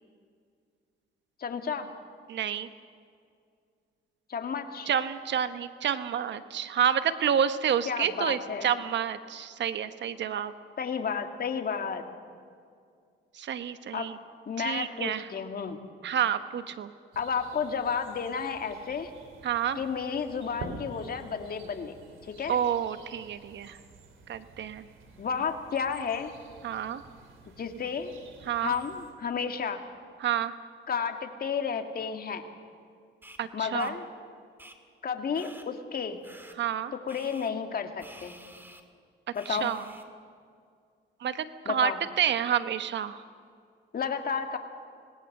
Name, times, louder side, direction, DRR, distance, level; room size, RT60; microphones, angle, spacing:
voice 1, 1.4-1.9 4.3-4.9 7.9-8.7 10.8-12.0 13.9-14.1 14.5-15.8 17.2-19.1 19.8-22.6 25.2-26.3 27.6-28.1 28.6-29.8 30.9-32.4 33.5-34.0 35.0-36.2 36.9-38.4 39.3-39.7 41.7-42.0 43.9-44.6, left 6 dB, 50° left, 6 dB, 2.2 m, -32 dB
voice 2, 2.3-2.7 4.9-10.5 13.3-14.2 14.6-15.3 16.0-16.9 19.4-19.8 22.5-23.8 24.3-24.9 26.6-27.0 28.5-28.7 30.2-30.5 33.4-33.9 36.6-36.9 39.5-39.8 41.2-43.2, right 9 dB, 65° right, 11 dB, 1.2 m, -29 dB
sound 1, 17.1-29.1, right 3 dB, 85° right, 3.2 m, -49 dB
sound 2, 33.2-33.4 33.8-33.9 34.6-34.8 35.3-35.7 36.2-36.6 37.1-37.5 38.0-38.8 39.3-40.0, right 1 dB, 10° right, 2.2 m, -50 dB
26.0 x 19.0 x 6.7 m, 2.2 s
cardioid pair, 90°, 20 cm